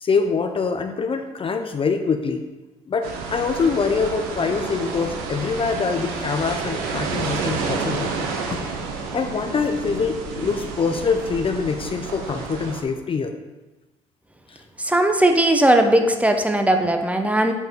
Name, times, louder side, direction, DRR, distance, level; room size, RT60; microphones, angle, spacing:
voice 1, 0.0-2.4 2.9-8.7 9.1-13.3 14.5-14.6, left 5 dB, 35° left, 6 dB, 0.7 m, -24 dB
sound 1, 3.0-12.8, right 4 dB, 70° right, 1.0 m, -30 dB
voice 2, 14.8-17.5, right 1 dB, 10° right, 5 dB, 0.9 m, -18 dB
7.9 x 4.8 x 3.8 m, 1.1 s
hypercardioid pair, 55°, 16 cm